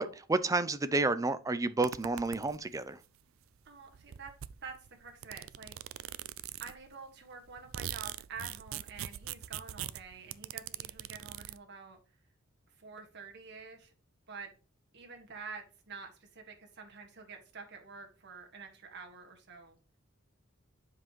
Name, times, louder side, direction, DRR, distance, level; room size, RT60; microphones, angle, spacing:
voice 1, 0.0-3.0, right 3 dB, 15° right, 0.5 m, -30 dB
sound 1, 1.8-2.8 3.7-3.8 3.9-6.9 7.3-11.6, right 11 dB, 70° right, 0.4 m, -42 dB
voice 2, 3.7-4.3 4.6-4.7 5.0-5.8 6.6-12.0 12.8-13.9 14.3-14.5 14.9-19.8, right 5 dB, 55° right, 1.7 m, -48 dB
7.4 x 5.7 x 3.1 m
head